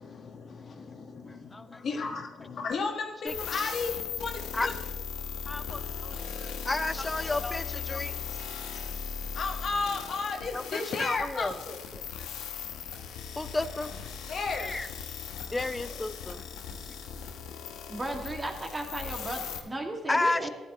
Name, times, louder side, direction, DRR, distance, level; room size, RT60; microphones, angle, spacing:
voice 1, 0.0-4.7 9.3-11.8 14.3-14.7 15.4-15.5 16.7-17.8, left 4 dB, 60° left, 1.5 m, -34 dB
voice 2, 3.2-3.7 4.5-4.7 5.5-6.1 6.4-8.1 10.5-11.5 13.4-13.9 14.6-14.9 15.5-16.4 20.1-20.5, left 2 dB, 20° left, 0.7 m, -31 dB
sound 1, 3.3-19.6, left 7 dB, 85° left, 1.1 m, -38 dB
voice 3, 17.9-20.5, right 2 dB, 20° right, 2.2 m, -35 dB
14.0 x 11.5 x 3.1 m
supercardioid pair, 65°, 0 cm